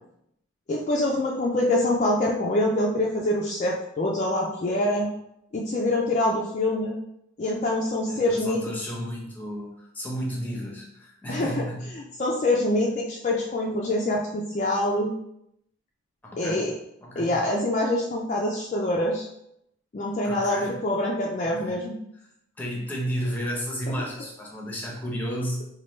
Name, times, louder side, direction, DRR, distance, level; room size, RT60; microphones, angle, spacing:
voice 1, 0.7-5.1 5.5-7.0 7.4-8.6 11.3-11.6 11.9-15.1 16.4-16.7 17.2-19.3 19.9-21.9, left 1 dB, 35° left, -2 dB, 0.3 m, -25 dB
voice 2, 8.1-11.9 16.2-16.7 17.0-17.4 20.2-20.7 21.4-21.8 22.6-25.6, equal, 10° left, -2 dB, 0.7 m, -32 dB
4.3 x 2.2 x 3.1 m, 0.78 s
head